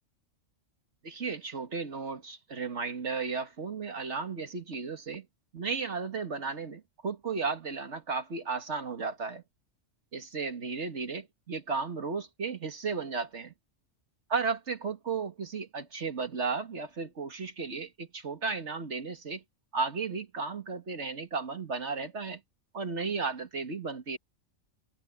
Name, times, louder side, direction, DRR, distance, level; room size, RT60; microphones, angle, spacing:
voice 1, 1.0-5.3 5.5-9.4 10.1-13.5 14.3-19.4 19.7-22.4 22.7-24.2, right 4 dB, 65° right, 2.1 m, -34 dB
omnidirectional pair, 1.3 m